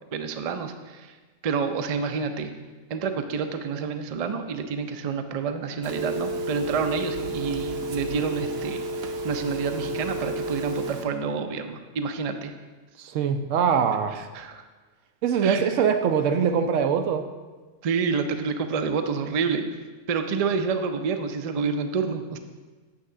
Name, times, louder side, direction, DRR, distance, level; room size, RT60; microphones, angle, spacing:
voice 1, 0.1-1.2 1.4-2.5 2.9-12.5 14.3-14.6 15.4-15.6 17.8-19.6 20.1-22.4, right 5 dB, 50° right, 7 dB, 0.4 m, -28 dB
Telephone, 5.8-11.0, right 1 dB, 65° right, 0.9 m, -31 dB
voice 2, 13.0-14.2 15.2-17.3, right 7 dB, 85° right, 8 dB, 1.0 m, -23 dB
8.7 x 3.6 x 6.6 m, 1.3 s
omnidirectional pair, 1.3 m